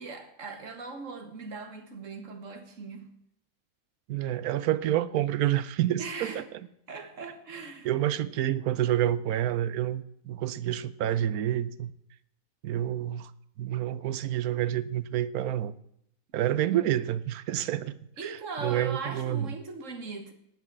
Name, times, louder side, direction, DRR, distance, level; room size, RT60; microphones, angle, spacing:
voice 1, 0.0-3.1 6.0-6.4 6.9-7.9 18.2-20.3, right 4 dB, 60° right, 1.8 m, -39 dB
voice 2, 4.1-6.4 7.8-11.9 12.6-13.3 13.6-15.7 16.3-17.9 18.2-19.5, right 12 dB, 90° right, 1.2 m, -28 dB
18.0 x 6.0 x 7.4 m
omnidirectional pair, 1.5 m